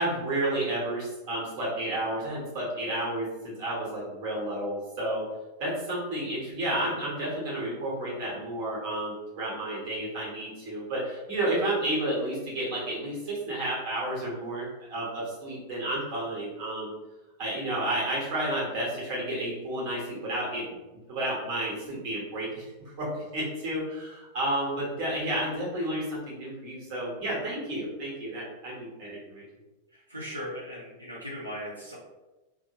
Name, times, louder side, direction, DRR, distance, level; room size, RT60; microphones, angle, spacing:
voice 1, 0.0-5.3 5.6-16.9 17.4-20.7 21.1-22.7 23.0-29.4, right 1 dB, 45° right, -4 dB, 1.2 m, -31 dB
voice 2, 29.9-31.9, equal, 85° right, -7 dB, 0.7 m, -38 dB
2.7 x 2.1 x 2.8 m, 1.1 s
figure-of-eight pair, 90°, 0 cm